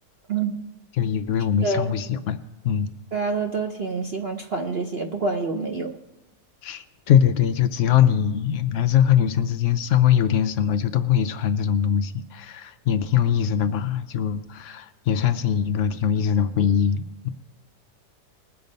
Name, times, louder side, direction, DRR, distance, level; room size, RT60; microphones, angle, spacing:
voice 1, 1.0-2.9 6.6-17.3, left 9 dB, 85° left, 10 dB, 0.6 m, -22 dB
voice 2, 1.6-1.9 3.1-6.0, right 4 dB, 55° right, 3 dB, 0.7 m, -27 dB
20.5 x 6.9 x 5.3 m, 0.99 s
omnidirectional pair, 1.9 m